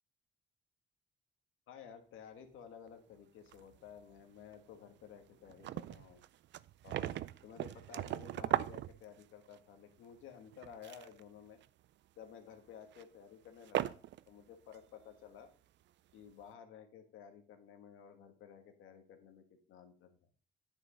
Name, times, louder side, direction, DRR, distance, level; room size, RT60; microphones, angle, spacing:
voice 1, 1.7-6.2 6.8-11.6 12.2-14.0 14.3-15.5 16.1-20.2, left 7 dB, 85° left, 5 dB, 1.6 m, -54 dB
sound 1, 3.5-4.2 4.5-4.6 5.0-5.1 5.3-9.6 10.5-11.2 11.6-11.9 12.9-13.0 13.6-14.3 14.7-14.8, right 13 dB, 65° right, 0.4 m, -39 dB
9.7 x 5.3 x 5.2 m, 0.42 s
cardioid pair, 90°, 20 cm